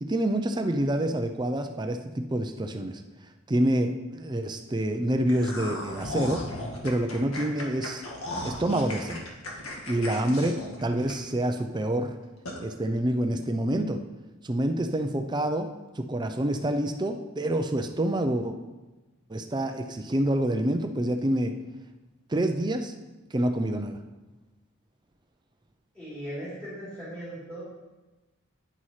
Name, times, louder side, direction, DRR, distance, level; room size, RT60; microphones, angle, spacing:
voice 1, 0.0-3.0 3.5-6.5 6.8-8.0 8.4-9.3 9.9-12.1 12.6-14.0 14.4-18.6 19.3-21.5 22.3-22.9 23.3-24.0, right 1 dB, 20° right, 6 dB, 0.5 m, -27 dB
sound 1, 5.3-11.5 11.9-12.0 12.5-12.6, left 1 dB, 80° left, 1.9 m, -36 dB
voice 2, 26.0-27.6, equal, 5° left, -11 dB, 3.4 m, -38 dB
9.9 x 9.6 x 3.2 m, 1.1 s
head